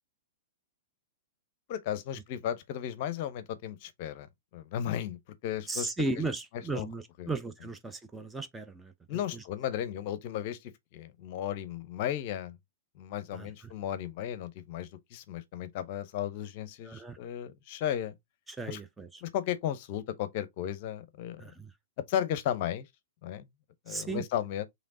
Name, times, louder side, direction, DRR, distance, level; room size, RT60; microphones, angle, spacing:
voice 1, 1.7-4.3 4.5-5.9 6.7-6.9 7.2-7.3 9.1-12.6 13.0-18.1 18.7-18.8 19.2-21.4 22.1-22.9 23.2-23.5 23.9-24.7, left 10 dB, 45° left, 0.7 m, -35 dB
voice 2, 5.7-8.9 9.3-9.4 13.3-13.7 16.8-17.2 18.5-19.2 21.4-21.7 23.9-24.2, right 3 dB, 10° right, 0.5 m, -36 dB
5.1 x 3.2 x 2.7 m
figure-of-eight pair, 105°, 0 cm